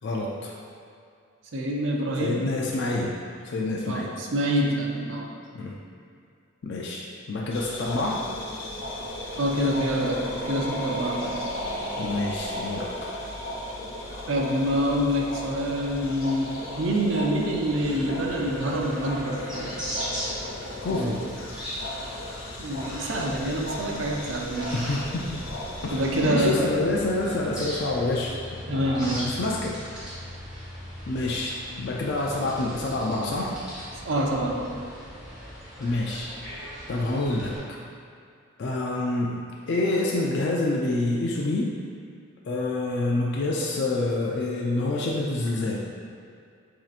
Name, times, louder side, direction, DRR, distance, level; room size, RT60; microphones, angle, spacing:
voice 1, 0.0-0.5 2.2-4.1 5.5-5.8 6.6-8.3 12.0-13.1 20.8-21.3 24.7-25.5 25.8-28.4 28.7-30.2 31.1-33.6 35.8-36.3 36.9-37.8 38.6-41.8 42.5-45.9, left 2 dB, 55° left, -2 dB, 0.4 m, -27 dB
voice 2, 1.5-2.4 3.9-5.3 9.4-11.4 14.3-19.8 20.9-21.3 22.6-24.8 25.9-26.6 28.7-29.2 34.0-34.7, right 1 dB, 65° right, 0 dB, 0.5 m, -26 dB
sound 1, 7.5-26.3, left 1 dB, 70° left, 0.7 m, -35 dB
sound 2, 17.7-37.6, equal, 5° right, 1.1 m, -39 dB
7.3 x 2.8 x 2.5 m, 2.4 s
head